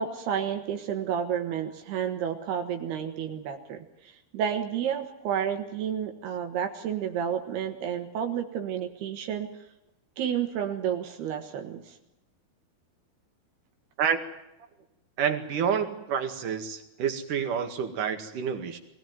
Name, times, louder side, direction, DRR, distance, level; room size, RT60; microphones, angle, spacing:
voice 1, 0.0-9.5 10.2-12.0, right 8 dB, 75° right, 5 dB, 3.5 m, -31 dB
voice 2, 14.0-14.3 15.2-18.8, right 7 dB, 55° right, 7 dB, 3.2 m, -28 dB
23.0 x 17.0 x 9.4 m, 0.87 s
omnidirectional pair, 4.7 m